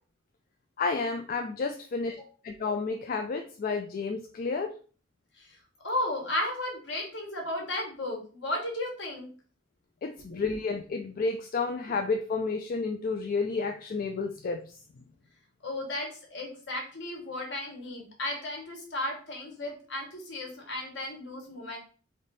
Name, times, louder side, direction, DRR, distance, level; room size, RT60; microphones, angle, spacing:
voice 1, 0.8-2.2 2.4-4.7 10.0-14.6, left 4 dB, 50° left, 5 dB, 0.3 m, -31 dB
voice 2, 5.8-9.3 10.3-10.4 15.6-21.8, left 1 dB, 70° left, 0 dB, 1.5 m, -34 dB
3.4 x 2.7 x 4.0 m, 0.40 s
head